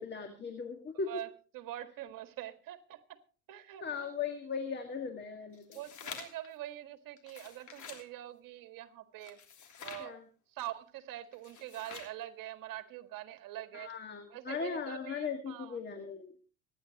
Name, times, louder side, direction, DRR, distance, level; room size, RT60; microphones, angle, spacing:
voice 1, 0.0-1.1 3.8-5.8 10.0-10.2 13.7-16.3, left 5 dB, 25° left, 1.9 m, -38 dB
voice 2, 1.1-3.2 3.5-4.1 5.7-9.4 9.8-13.9 14.3-15.8, right 14 dB, 45° right, 1.8 m, -44 dB
sound 1, 5.5-6.5 7.2-8.1 9.2-10.1 11.3-12.2, left 7 dB, 40° left, 3.1 m, -48 dB
25.0 x 10.0 x 3.0 m
hypercardioid pair, 75°, 44 cm